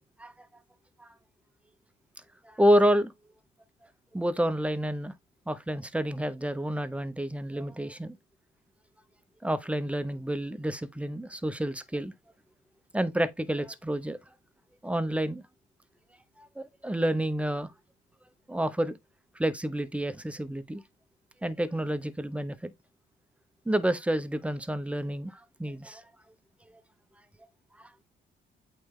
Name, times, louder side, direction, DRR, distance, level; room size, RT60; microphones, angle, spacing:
voice 1, 2.4-3.1 4.1-5.1 5.5-8.2 9.4-12.1 12.9-14.2 14.8-15.4 16.4-17.7 18.5-19.0 19.3-20.8 21.4-22.7 23.7-26.0 27.8-27.9, right 1 dB, 5° right, 0.9 m, -29 dB
8.7 x 3.4 x 3.7 m
cardioid pair, 90°, 20 cm